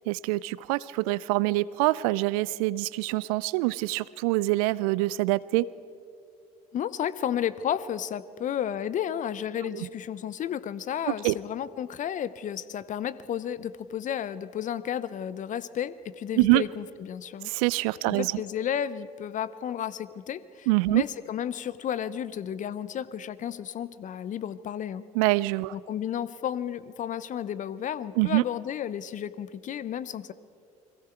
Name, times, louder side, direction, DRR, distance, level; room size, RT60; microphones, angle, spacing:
voice 1, 0.1-5.7 11.1-11.4 16.4-16.6 17.4-18.4 20.7-21.0 25.1-25.7 28.2-28.4, right 21 dB, 65° right, 20 dB, 0.5 m, -25 dB
voice 2, 6.7-17.5 18.1-25.0 25.7-30.3, left 9 dB, 40° left, 17 dB, 0.8 m, -32 dB
29.5 x 22.0 x 4.6 m, 2.3 s
figure-of-eight pair, 60°, 20 cm